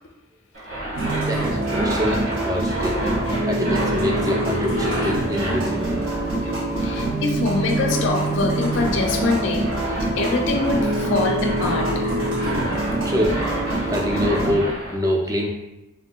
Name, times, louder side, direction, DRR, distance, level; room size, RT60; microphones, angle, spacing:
sound 1, 0.5-15.0, right 1 dB, 60° right, 1.0 m, -31 dB
sound 2, 0.9-14.6, right 2 dB, 80° right, 0.7 m, -25 dB
voice 1, 1.3-3.2 3.5-6.0 13.0-13.4 13.9-15.5, left 1 dB, 15° right, 0 dB, 0.3 m, -25 dB
voice 2, 6.8-12.1, left 3 dB, 65° left, 2 dB, 0.3 m, -24 dB
3.6 x 2.4 x 2.2 m, 0.99 s
head